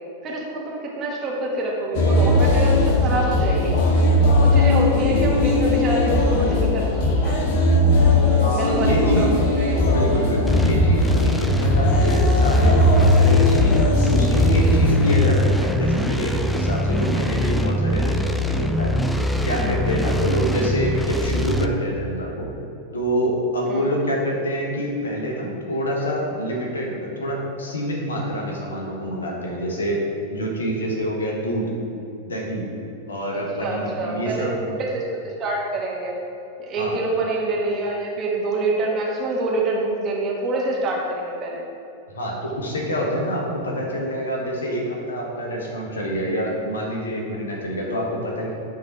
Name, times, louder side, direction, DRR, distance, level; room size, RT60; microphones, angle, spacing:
voice 1, 0.2-3.8 4.2-6.9 7.2-7.4 8.5-9.3 9.5-9.8 17.0-17.1 20.0-20.1 23.6-23.9 33.3-34.4 34.8-36.2 36.7-41.6, right 2 dB, 30° right, -2 dB, 1.5 m, -26 dB
sound 1, 1.9-15.2, left 1 dB, 50° left, 0.9 m, -18 dB
voice 2, 8.4-9.3 9.8-18.9 19.4-22.5 22.9-30.0 30.3-31.7 32.2-32.6 33.1-34.8 36.8-37.0 42.1-48.5, equal, 70° left, -1 dB, 1.4 m, -26 dB
sound 2, 10.5-21.7, equal, 5° left, 0.4 m, -22 dB
9.1 x 3.9 x 4.6 m, 2.7 s
figure-of-eight pair, 90°, 0 cm